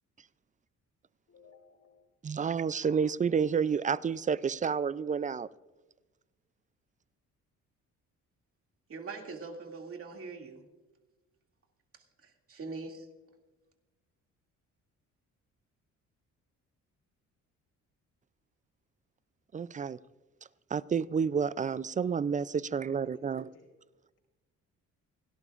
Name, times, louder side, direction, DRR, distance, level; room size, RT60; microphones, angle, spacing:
voice 1, 1.3-2.1 23.0-23.7, left 4 dB, 55° left, 5.2 m, -59 dB
voice 2, 2.2-5.5 19.5-20.0 20.7-23.5, right 6 dB, 25° right, 0.4 m, -30 dB
voice 3, 8.9-10.6 12.2-13.1, right 4 dB, 45° right, 2.4 m, -42 dB
29.0 x 12.0 x 2.5 m
cardioid pair, 90°, 30 cm